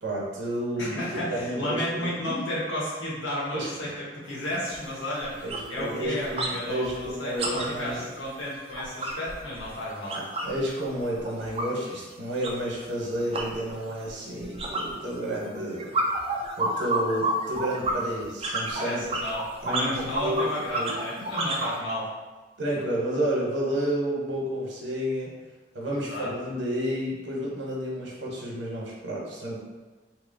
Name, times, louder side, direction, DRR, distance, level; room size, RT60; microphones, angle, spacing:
voice 1, 0.0-2.4 3.5-3.9 5.4-8.0 10.1-19.1 19.6-20.5 20.8-20.9 21.2-21.3 22.6-25.3 25.7-29.6, right 1 dB, 80° right, -3 dB, 0.8 m, -31 dB
voice 2, 0.8-10.2 18.7-22.1 26.1-26.3, left 1 dB, 90° left, -6 dB, 1.0 m, -32 dB
sound 1, 4.3-4.4 4.7-4.9 5.2-6.6 6.8-10.6 10.9-21.7, right 2 dB, 35° right, 0.4 m, -31 dB
2.9 x 2.0 x 3.7 m, 1.2 s
head